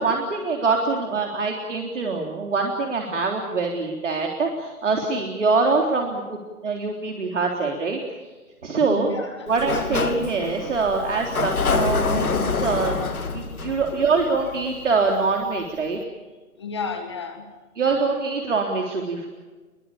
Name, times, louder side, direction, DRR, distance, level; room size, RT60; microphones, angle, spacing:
voice 1, 0.0-8.0 8.6-9.1 9.5-13.0 13.3-16.0 17.8-19.4, right 4 dB, 55° right, 1 dB, 3.7 m, -24 dB
voice 2, 8.9-9.5 13.4-13.5 16.6-17.5, left 4 dB, 20° left, 5 dB, 1.8 m, -32 dB
Sliding door, 9.5-15.1, left 4 dB, 70° left, 3.0 m, -26 dB
26.5 x 22.5 x 7.2 m, 1.3 s
hypercardioid pair, 180°, 45 cm